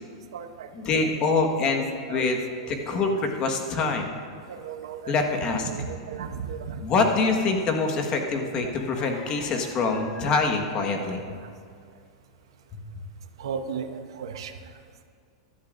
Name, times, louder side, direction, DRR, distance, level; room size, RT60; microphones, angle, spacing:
voice 1, 0.3-0.7 1.0-1.1 1.4-1.5 2.1-2.2 2.5-3.2 4.5-7.2 7.5-7.6 8.4-9.2 9.5-9.7 11.0-11.2 13.4-14.5, right 6 dB, 80° right, 8 dB, 0.8 m, -37 dB
voice 2, 0.9-2.4 2.7-4.1 5.1-5.6 6.8-11.2, left 4 dB, 35° left, 4 dB, 1.5 m, -25 dB
15.5 x 12.0 x 2.6 m, 2.2 s
supercardioid pair, 135°, 3 cm